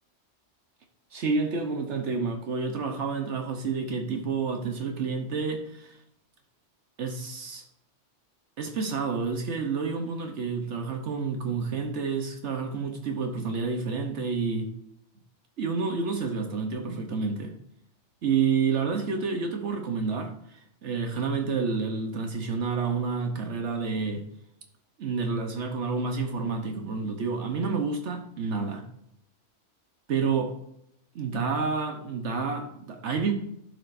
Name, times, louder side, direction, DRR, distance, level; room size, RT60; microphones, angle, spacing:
voice 1, 1.1-6.0 7.0-7.6 8.6-14.7 15.6-17.5 18.2-24.2 25.0-28.9 30.1-30.5 31.1-33.3, right 5 dB, 75° right, 4 dB, 1.2 m, -29 dB
12.0 x 5.0 x 2.5 m, 0.74 s
omnidirectional pair, 1.2 m